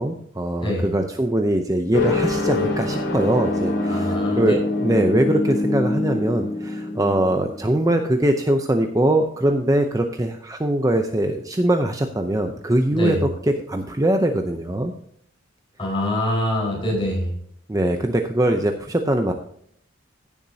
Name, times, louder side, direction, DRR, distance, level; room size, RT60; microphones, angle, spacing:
voice 1, 0.0-14.9 17.7-19.3, right 1 dB, 15° right, 5 dB, 0.6 m, -22 dB
voice 2, 0.6-0.9 3.9-4.5 12.9-13.2 15.8-17.3, left 1 dB, 25° left, -2 dB, 4.5 m, -24 dB
sound 1, 1.9-8.3, left 2 dB, 60° left, 2.7 m, -25 dB
16.0 x 7.2 x 2.8 m, 0.66 s
head